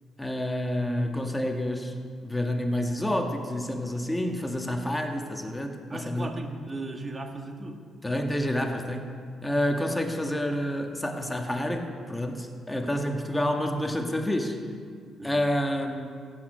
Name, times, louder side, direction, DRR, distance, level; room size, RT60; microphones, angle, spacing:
voice 1, 0.2-1.9 2.2-6.4 8.0-9.1 9.4-14.6 15.2-16.2, left 1 dB, 10° left, 3 dB, 1.4 m, -29 dB
voice 2, 5.9-7.8 15.2-15.4, right 2 dB, 30° right, 4 dB, 1.4 m, -37 dB
15.5 x 8.7 x 5.4 m, 2.1 s
cardioid pair, 90°, 0 cm